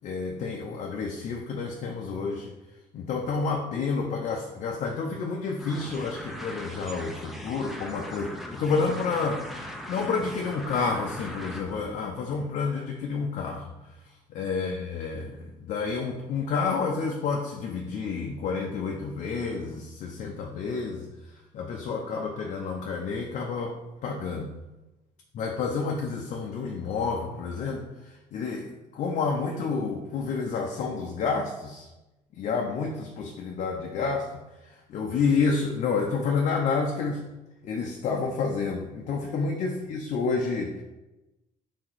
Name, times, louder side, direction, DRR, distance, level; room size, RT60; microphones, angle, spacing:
voice 1, 0.0-2.5 2.9-24.5 25.3-31.9 32.3-34.3 34.6-37.2 37.6-40.8, left 4 dB, 60° left, 1 dB, 0.5 m, -30 dB
sound 1, 5.6-12.0, equal, ahead, 0.6 m, -40 dB
3.4 x 2.9 x 4.0 m, 1.0 s
cardioid pair, 95°, 14 cm